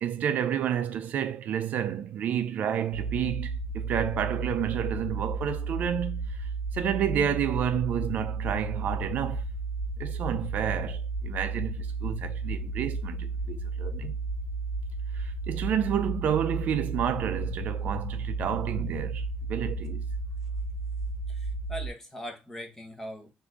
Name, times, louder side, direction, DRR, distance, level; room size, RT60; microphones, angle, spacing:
voice 1, 0.0-9.4 10.0-14.2 15.1-20.0, right 9 dB, 60° right, 0.5 m, -30 dB
sound 1, 2.9-21.9, right 3 dB, 40° left, 1.3 m, -33 dB
voice 2, 21.3-23.3, equal, 10° left, 1.2 m, -40 dB
3.7 x 2.7 x 4.6 m
cardioid pair, 135°, 3 cm